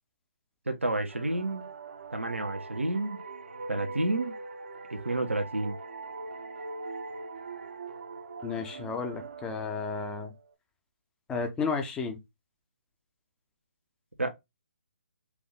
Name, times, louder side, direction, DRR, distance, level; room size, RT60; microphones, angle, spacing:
voice 1, 0.7-1.7 2.1-3.2 3.7-4.4 4.9-5.8 14.2-14.3, right 2 dB, 90° right, 1.1 m, -30 dB
sound 1, 1.1-10.5, right 3 dB, 60° right, 1.0 m, -42 dB
voice 2, 8.4-10.3 11.3-12.2, left 5 dB, 10° left, 0.9 m, -32 dB
4.7 x 2.6 x 3.7 m
figure-of-eight pair, 140°, 7 cm